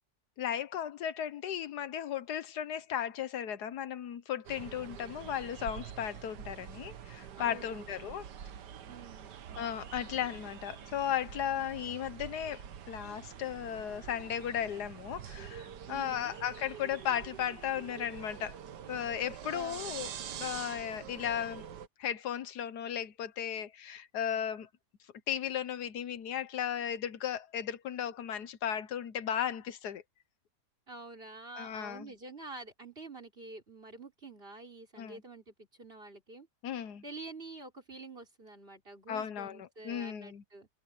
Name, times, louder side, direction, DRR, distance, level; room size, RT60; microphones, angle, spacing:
voice 1, 0.4-8.2 9.6-18.6 18.9-20.1 20.4-21.6 22.0-24.7 25.3-30.0 31.6-32.1 35.0-35.2 36.6-37.0 39.1-40.4, left 9 dB, 75° left, 1.4 m, -35 dB
sound 1, 4.5-21.9, right 9 dB, 90° right, 1.7 m, -46 dB
voice 2, 7.4-8.2 8.9-9.4 15.9-16.4 19.5-20.1 30.9-36.5 37.0-40.7, right 3 dB, 35° right, 4.4 m, -48 dB
omnidirectional pair, 1.7 m